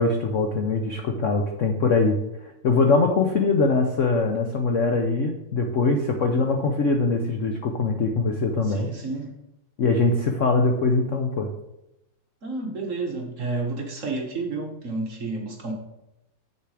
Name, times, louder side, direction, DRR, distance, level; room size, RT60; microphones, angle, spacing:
voice 1, 0.0-2.2 2.6-8.9 9.8-11.5, left 3 dB, 80° left, 4 dB, 0.6 m, -22 dB
voice 2, 8.6-9.3 12.4-15.7, right 3 dB, 45° right, 2 dB, 1.2 m, -30 dB
7.3 x 6.8 x 4.8 m, 0.88 s
omnidirectional pair, 2.4 m